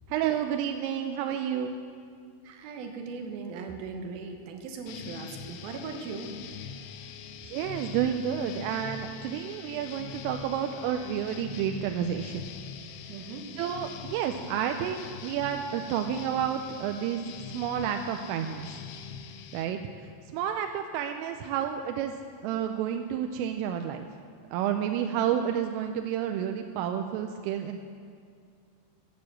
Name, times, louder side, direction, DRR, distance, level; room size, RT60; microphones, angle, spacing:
voice 1, 0.1-1.8 7.4-12.4 13.6-17.2 17.5-18.8 19.5-19.8 20.3-22.1 22.4-24.1 24.5-27.8, right 9 dB, 85° right, 5 dB, 3.2 m, -30 dB
voice 2, 2.4-6.3 13.1-13.5, right 4 dB, 70° right, 4 dB, 2.5 m, -39 dB
sound 1, 4.9-19.7, left 7 dB, 85° left, 3.1 m, -43 dB
15.5 x 9.6 x 7.7 m, 2.2 s
omnidirectional pair, 5.7 m